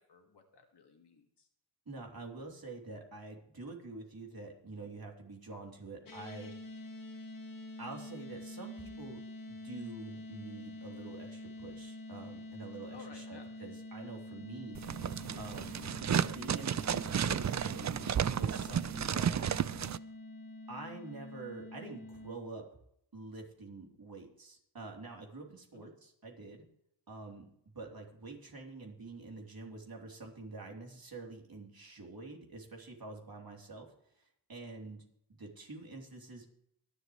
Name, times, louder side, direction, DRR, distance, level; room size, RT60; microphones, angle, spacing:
voice 1, 0.0-1.5 12.9-13.5 25.7-25.9, left 4 dB, 85° left, 3 dB, 2.1 m, -55 dB
voice 2, 1.9-6.5 7.8-9.2 9.5-14.8 15.4-15.8 16.2-19.6 20.7-22.6 23.1-26.6 27.1-27.5 27.8-33.9 34.2-34.3 34.5-35.0 35.3-36.5, right 3 dB, 60° right, 0 dB, 3.3 m, -47 dB
sound 1, 6.0-22.4, left 2 dB, 55° left, 2.5 m, -47 dB
sound 2, 14.7-20.0, right 8 dB, 45° right, 0.4 m, -32 dB
24.0 x 8.2 x 3.2 m, 0.72 s
wide cardioid pair, 60°, 39 cm